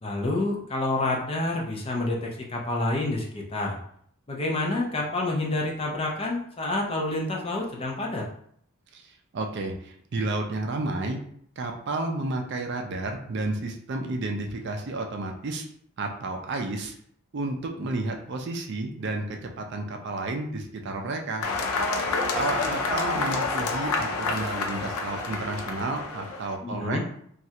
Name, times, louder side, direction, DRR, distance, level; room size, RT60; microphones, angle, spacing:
voice 1, 0.0-3.8 4.3-8.3 26.6-27.0, left 2 dB, 25° left, -1 dB, 0.5 m, -28 dB
voice 2, 8.9-11.2 11.6-15.6 16.0-16.9 17.3-21.5 22.0-27.0, right 2 dB, 50° right, 3 dB, 0.4 m, -31 dB
sound 1, 21.4-26.5, left 3 dB, 85° left, 0.5 m, -28 dB
3.1 x 2.4 x 2.8 m, 0.65 s
head